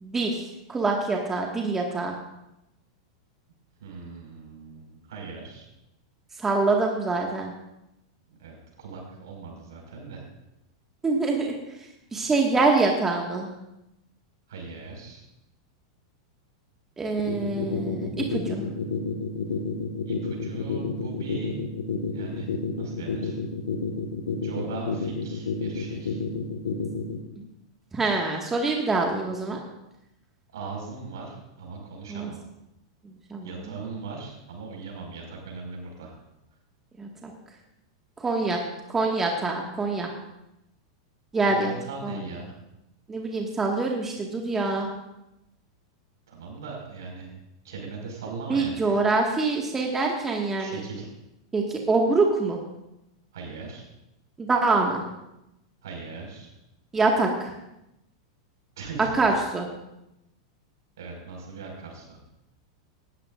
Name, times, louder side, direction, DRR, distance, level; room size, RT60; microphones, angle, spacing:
voice 1, 0.0-2.2 6.4-7.5 11.0-11.5 12.1-13.5 17.0-18.7 27.9-29.6 32.1-32.3 33.3-33.6 37.0-37.3 38.2-38.6 38.9-40.1 41.3-41.7 42.0-42.3 43.1-44.9 48.5-50.8 51.5-52.6 54.4-55.0 56.9-57.5 59.1-59.7, right 3 dB, 15° right, 0 dB, 1.8 m, -25 dB
voice 2, 3.8-5.7 8.4-10.2 14.5-15.2 20.0-21.6 22.1-22.5 22.8-23.4 24.4-26.2 30.5-32.4 33.4-36.1 41.5-42.5 46.3-47.3 47.6-49.0 50.6-51.1 53.3-53.9 55.8-56.5 58.8-59.1 61.0-62.2, right 4 dB, 70° right, 0 dB, 5.3 m, -39 dB
sound 1, 17.2-27.2, left 6 dB, 75° left, 1.6 m, -29 dB
18.0 x 13.5 x 2.6 m, 0.90 s
hypercardioid pair, 95°, 2 cm